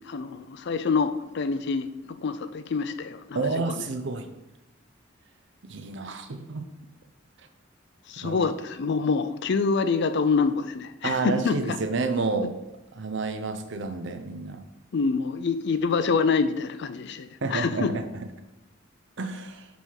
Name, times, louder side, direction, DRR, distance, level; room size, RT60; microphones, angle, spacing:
voice 1, 0.1-3.8 8.1-11.8 14.9-17.9, left 4 dB, 60° left, 11 dB, 0.4 m, -26 dB
voice 2, 3.3-4.3 5.6-6.6 8.2-8.4 11.0-12.5 12.9-14.6 17.4-18.3 19.2-19.7, right 3 dB, 65° right, 8 dB, 0.7 m, -30 dB
5.4 x 4.4 x 4.6 m, 0.94 s
head